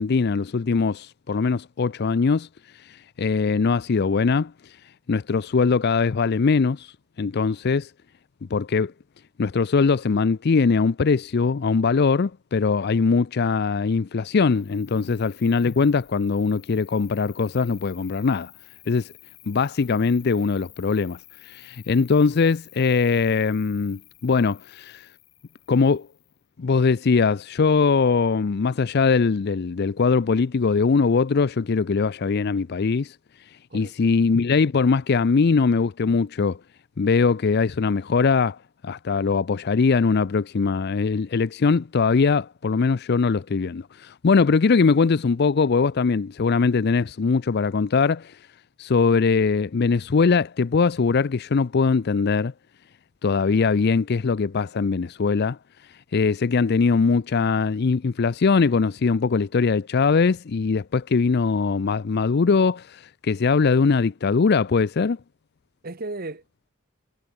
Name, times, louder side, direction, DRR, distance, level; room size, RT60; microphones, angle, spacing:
voice 1, 0.0-2.5 2.9-4.5 5.1-6.9 7.2-7.9 8.5-8.9 9.4-18.5 18.9-19.1 19.5-21.2 21.4-25.1 25.7-26.1 26.6-33.2 33.7-36.6 37.0-38.6 38.8-48.4 48.8-52.5 53.2-55.6 56.1-65.2, left 4 dB, 50° left, 0.5 m, -21 dB
Cricket, 14.5-26.5, left 18 dB, 65° left, 7.1 m, -51 dB
voice 2, 65.8-66.7, right 2 dB, 45° right, 1.2 m, -36 dB
head